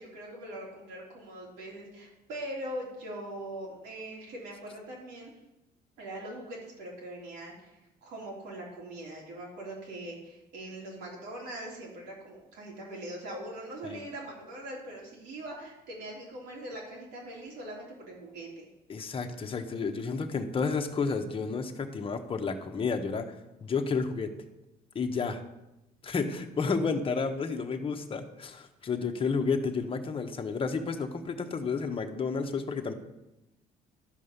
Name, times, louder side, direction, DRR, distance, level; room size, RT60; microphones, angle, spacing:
voice 1, 0.0-5.3 6.0-7.7 8.0-18.7, right 1 dB, 85° right, -3 dB, 3.5 m, -41 dB
voice 2, 18.9-23.4 23.6-24.3 24.9-25.4 26.0-32.9, left 4 dB, 30° left, 5 dB, 1.1 m, -31 dB
12.0 x 5.4 x 6.7 m, 0.95 s
cardioid pair, 110°, 17 cm